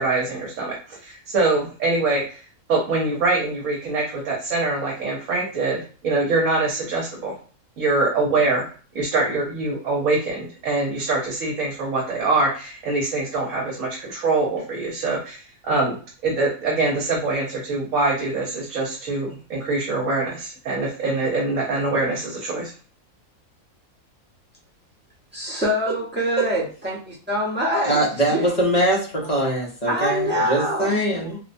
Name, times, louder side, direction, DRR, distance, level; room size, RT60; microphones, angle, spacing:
voice 1, 0.0-2.4 2.7-7.3 7.8-8.7 8.9-22.7, right 3 dB, 70° right, -2 dB, 1.1 m, -24 dB
voice 2, 25.3-28.5 29.9-31.0, equal, 10° right, -8 dB, 0.6 m, -25 dB
voice 3, 27.8-31.4, right 1 dB, 45° left, -4 dB, 0.5 m, -22 dB
2.6 x 2.1 x 2.5 m, 0.39 s
omnidirectional pair, 1.5 m